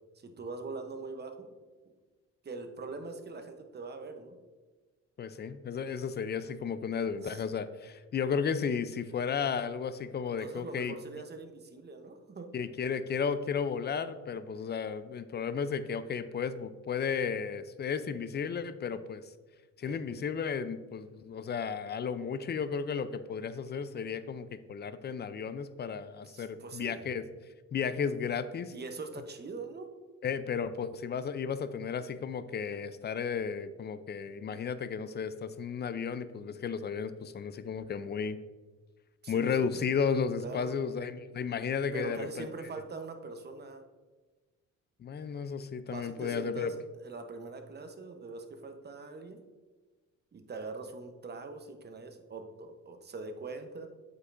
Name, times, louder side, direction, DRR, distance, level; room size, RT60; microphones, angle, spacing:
voice 1, 0.1-1.5 2.4-4.4 7.2-7.4 10.4-12.5 19.8-20.0 26.3-27.0 28.7-29.9 39.2-39.7 40.4-40.7 41.9-43.8 45.8-49.4 50.3-53.9, right 3 dB, 35° right, 6 dB, 0.8 m, -42 dB
voice 2, 5.2-10.9 12.5-19.2 19.8-27.2 27.7-28.7 30.2-38.4 39.3-42.5 45.0-46.7, left 6 dB, 35° left, 13 dB, 0.4 m, -33 dB
7.9 x 5.3 x 2.5 m, 1.3 s
cardioid pair, 90°, 30 cm